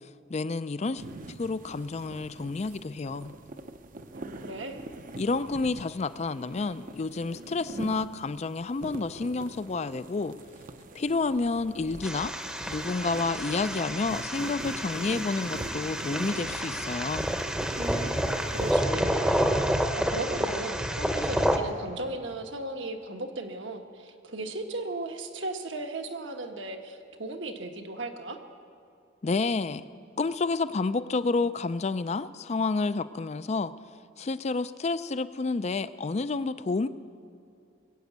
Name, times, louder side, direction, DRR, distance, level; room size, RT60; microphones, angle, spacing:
voice 1, 0.3-1.0 1.3-3.3 5.2-10.4 10.9-12.3 12.7-17.3 29.2-29.8 30.2-33.7 34.2-36.9, left 3 dB, 35° left, 14 dB, 0.4 m, -29 dB
sound 1, 1.0-18.8, right 2 dB, 45° right, 0.7 m, -44 dB
voice 2, 4.1-4.8 17.7-19.5 20.0-28.4, right 2 dB, 70° right, 5 dB, 1.3 m, -36 dB
sound 2, 12.0-21.6, equal, 5° right, 0.8 m, -29 dB
21.5 x 8.2 x 8.1 m, 2.6 s
head